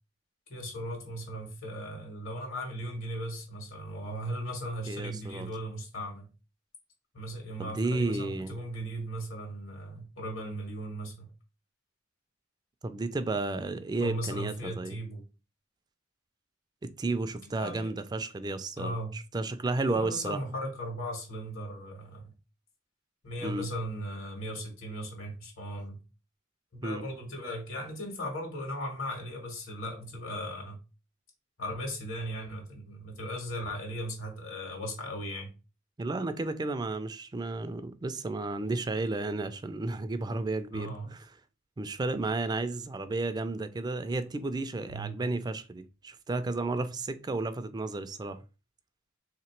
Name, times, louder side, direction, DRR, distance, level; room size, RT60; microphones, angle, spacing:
voice 1, 0.5-6.3 7.1-11.3 14.0-15.2 17.5-18.0 18.8-19.2 19.8-22.3 23.2-26.0 26.7-30.8 31.6-35.5 40.7-41.1 44.9-45.2, equal, 80° left, 1.5 m, -37 dB
voice 2, 4.9-5.5 7.6-8.6 12.8-15.0 16.8-20.4 23.4-23.7 26.8-27.0 36.0-41.3 41.8-48.4, right 2 dB, 20° right, 0.3 m, -32 dB
3.1 x 2.9 x 4.4 m
head